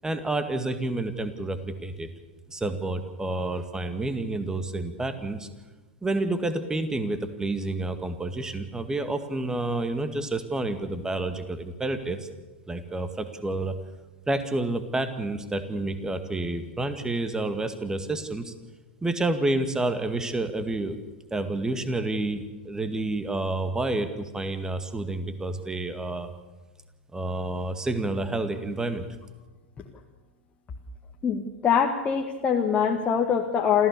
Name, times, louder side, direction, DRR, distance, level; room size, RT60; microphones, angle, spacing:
voice 1, 0.0-2.1 2.5-5.5 6.0-12.3 12.7-13.7 14.3-18.5 19.0-21.0 21.3-26.3 27.1-29.1, right 2 dB, 10° right, 9 dB, 2.0 m, -29 dB
voice 2, 31.2-33.9, left 7 dB, 25° left, 0 dB, 1.8 m, -23 dB
28.0 x 15.0 x 6.9 m, 1.2 s
figure-of-eight pair, 95°, 6 cm